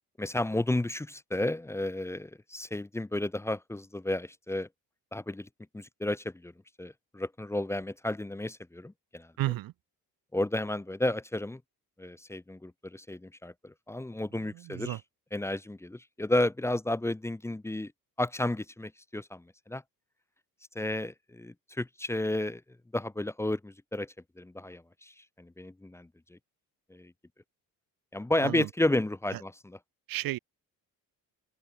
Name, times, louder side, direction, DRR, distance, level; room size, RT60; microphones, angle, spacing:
voice 1, 0.2-4.7 5.1-5.5 5.7-6.5 6.8-9.3 10.3-11.6 12.0-15.0 15.3-17.9 18.2-19.8 20.7-22.6 22.9-26.4 26.9-27.1 28.1-29.8, left 1 dB, 10° left, 1.1 m, -32 dB
voice 2, 9.4-9.7 14.5-15.0 28.4-28.7 29.3-29.4 30.1-30.4, right 16 dB, 80° right, 1.2 m, -33 dB
cardioid pair, 160°, 34 cm